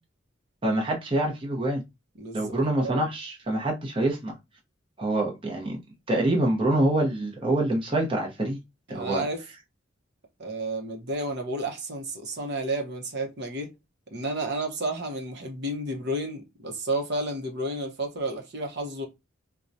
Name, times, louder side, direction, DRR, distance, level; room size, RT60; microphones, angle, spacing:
voice 1, 0.6-1.8 2.3-4.3 5.0-5.8 6.1-8.6 8.9-9.2, right 1 dB, 25° right, 0.8 m, -25 dB
voice 2, 2.2-3.1 8.9-9.4 10.4-13.7 14.1-19.1, right 1 dB, 55° right, 0.9 m, -31 dB
4.4 x 2.3 x 2.6 m
head